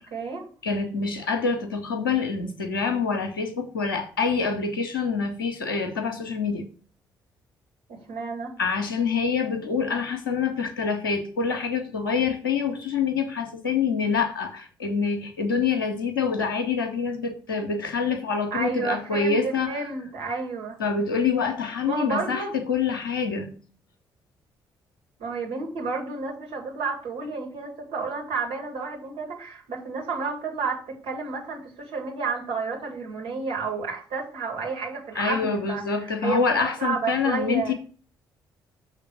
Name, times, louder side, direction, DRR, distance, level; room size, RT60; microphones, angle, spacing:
voice 1, 0.1-0.4 7.9-8.6 18.5-20.8 21.8-22.6 25.2-37.7, right 4 dB, 60° right, 2.2 m, -31 dB
voice 2, 0.6-6.7 8.6-19.8 20.8-23.6 35.1-37.7, left 5 dB, 80° left, 0.8 m, -26 dB
6.7 x 3.3 x 6.0 m
figure-of-eight pair, 45°, 11 cm